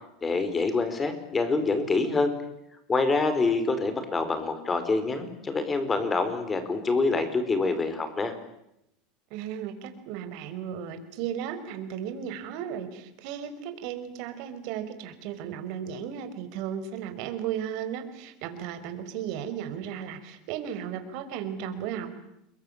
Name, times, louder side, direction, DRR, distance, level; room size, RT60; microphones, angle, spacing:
voice 1, 0.2-2.3 2.9-8.3, left 3 dB, 15° left, 10 dB, 4.8 m, -26 dB
voice 2, 9.3-22.1, right 9 dB, 60° right, 9 dB, 5.3 m, -35 dB
29.5 x 22.0 x 9.0 m, 0.82 s
supercardioid pair, 145°, 0 cm